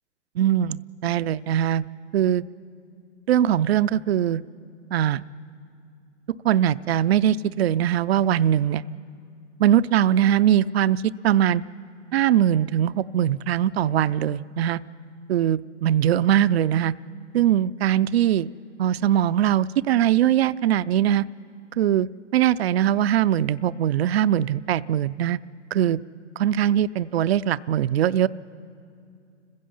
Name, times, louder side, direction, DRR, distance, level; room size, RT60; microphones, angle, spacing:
voice 1, 0.4-1.8 2.1-2.4 3.3-4.4 4.9-5.2 6.4-8.8 9.6-11.6 12.1-14.8 15.3-16.9 17.3-18.5 18.8-21.3 21.8-22.1 22.3-25.4 25.7-26.0 26.4-28.3, right 11 dB, 55° right, 17 dB, 0.5 m, -21 dB
30.0 x 16.0 x 5.5 m, 2.3 s
hypercardioid pair, 135°, 37 cm